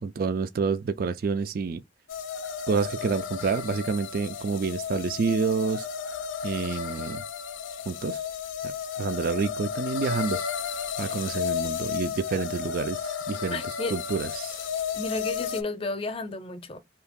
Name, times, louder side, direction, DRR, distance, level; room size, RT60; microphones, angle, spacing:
voice 1, 0.0-1.8 2.7-5.9 6.4-7.2 7.9-8.2 8.6-8.7 9.0-13.6 13.9-14.6, right 5 dB, 50° right, 0.3 m, -28 dB
sound 1, 2.1-15.6, left 7 dB, 90° left, 0.4 m, -33 dB
voice 2, 13.5-14.0 14.9-16.8, left 2 dB, 30° left, 0.6 m, -32 dB
2.8 x 2.4 x 3.5 m
head